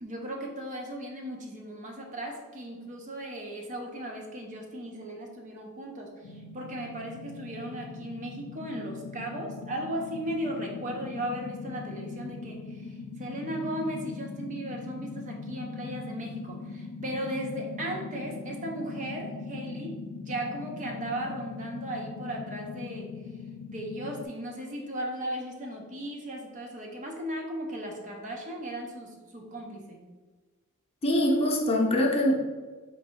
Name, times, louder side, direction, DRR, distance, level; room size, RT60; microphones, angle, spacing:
voice 1, 0.0-23.1 23.7-30.0, right 1 dB, 35° right, 1 dB, 0.6 m, -36 dB
sound 1, 6.2-24.3, left 4 dB, 80° left, 0.4 m, -41 dB
voice 2, 31.0-32.4, left 1 dB, 25° left, -1 dB, 0.7 m, -23 dB
4.4 x 2.6 x 4.3 m, 1.3 s
head